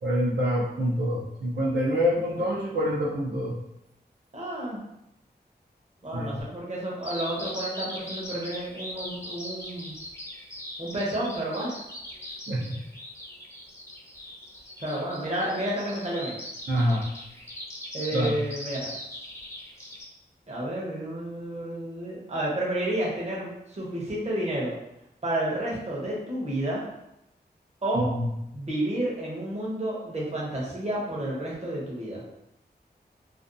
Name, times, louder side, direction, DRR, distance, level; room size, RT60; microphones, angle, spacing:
voice 1, 0.0-3.6 6.1-6.4 12.5-12.8 16.7-17.0 18.1-18.4 27.9-28.3, equal, 75° right, -6 dB, 0.6 m, -26 dB
voice 2, 4.3-4.8 6.0-10.0 10.8-11.8 14.8-16.4 17.9-18.9 20.5-24.7 25.2-26.9 27.8-28.1 28.5-32.2, right 1 dB, 40° right, -5 dB, 0.8 m, -30 dB
Bird vocalization bird call bird song, 7.0-20.0, left 1 dB, 15° left, 0.6 m, -40 dB
2.5 x 2.2 x 2.5 m, 0.86 s
wide cardioid pair, 90°, 18 cm